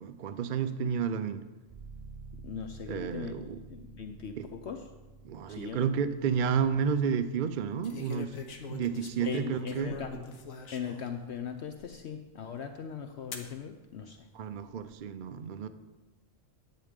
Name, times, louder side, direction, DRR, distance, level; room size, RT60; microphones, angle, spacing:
voice 1, 0.0-1.4 2.9-3.6 5.3-8.3 8.7-9.9 14.4-15.7, right 7 dB, 60° right, 0.5 m, -31 dB
sound 1, 1.7-9.4, right 3 dB, 15° right, 4.3 m, -51 dB
voice 2, 2.4-4.9 5.5-5.9 9.2-10.2 10.7-14.2, left 7 dB, 60° left, 0.9 m, -39 dB
sound 2, 6.2-6.6 7.8-11.2 11.8-11.9 13.3-13.5 14.4-14.9, left 4 dB, 85° left, 1.5 m, -42 dB
10.5 x 8.7 x 5.2 m
omnidirectional pair, 1.4 m